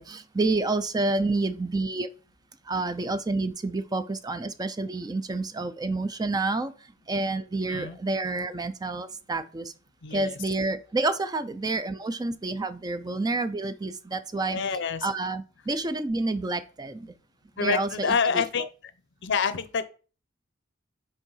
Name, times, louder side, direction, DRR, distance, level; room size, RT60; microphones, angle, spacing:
voice 1, 0.0-2.1 2.7-6.7 7.1-9.7 10.1-14.6 15.0-17.1 17.6-18.4, right 2 dB, 20° right, 0.4 m, -29 dB
voice 2, 7.7-8.0 10.0-10.4 14.5-15.1 17.6-18.7 19.2-19.8, left 5 dB, 65° left, 0.7 m, -27 dB
5.5 x 4.6 x 5.5 m
head